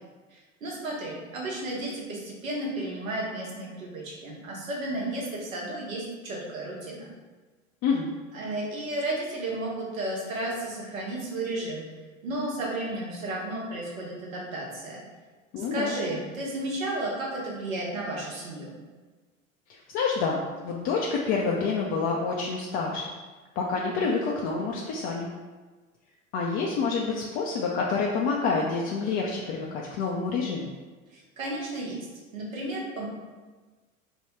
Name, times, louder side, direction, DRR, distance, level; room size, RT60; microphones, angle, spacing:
voice 1, 0.3-7.1 8.3-11.8 12.2-15.0 15.6-18.7 31.1-32.1 32.3-33.1, right 1 dB, 75° right, -3 dB, 1.2 m, -33 dB
voice 2, 15.5-16.0 19.7-23.1 23.6-25.3 26.3-30.7, left 4 dB, 40° left, -2 dB, 0.5 m, -28 dB
3.5 x 2.2 x 4.3 m, 1.3 s
figure-of-eight pair, 80°, 41 cm